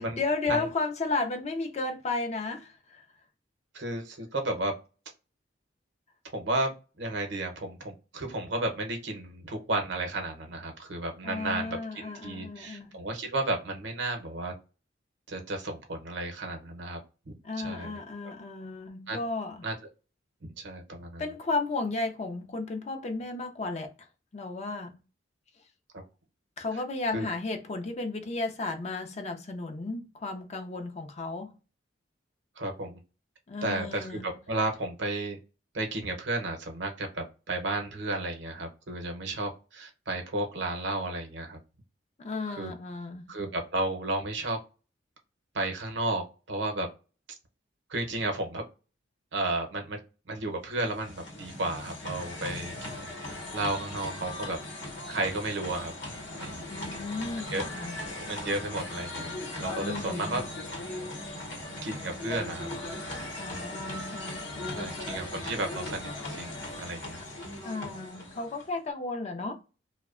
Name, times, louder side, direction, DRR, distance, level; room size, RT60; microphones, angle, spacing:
voice 1, 0.0-3.0 11.2-12.9 17.4-19.7 21.2-23.9 24.3-25.0 26.6-31.5 33.5-34.3 42.2-43.3 56.7-58.0 59.8-60.4 63.4-64.9 67.6-69.5, left 3 dB, 35° left, 0.4 m, -34 dB
voice 2, 3.7-4.7 6.2-14.5 15.3-17.0 17.3-18.0 19.1-19.2 19.6-19.7 20.6-21.2 27.1-27.2 32.6-33.0 33.6-35.4 35.7-41.6 42.6-42.7 43.3-44.6 45.5-46.9 47.9-48.6 49.3-50.0 50.3-53.1 53.5-54.6 55.1-55.9 56.4-56.7 57.5-57.7 58.3-60.4 61.8-62.7 64.7-66.5 66.8-67.2, right 2 dB, 65° right, 0.7 m, -33 dB
sound 1, 50.7-68.8, left 1 dB, 65° left, 0.8 m, -38 dB
2.7 x 2.1 x 2.4 m
head